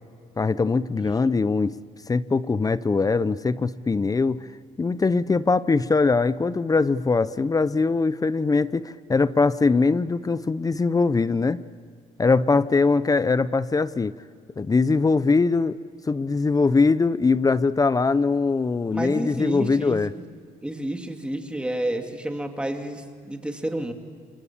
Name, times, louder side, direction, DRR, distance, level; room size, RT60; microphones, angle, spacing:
voice 1, 0.4-1.8 2.1-4.5 4.8-11.6 12.2-14.1 14.6-15.8 16.1-20.1, left 4 dB, 25° left, 16 dB, 0.7 m, -22 dB
voice 2, 18.9-20.2 20.6-23.9, right 1 dB, 5° right, 4 dB, 2.8 m, -30 dB
27.5 x 23.0 x 8.6 m, 2.1 s
cardioid pair, 90°, 15 cm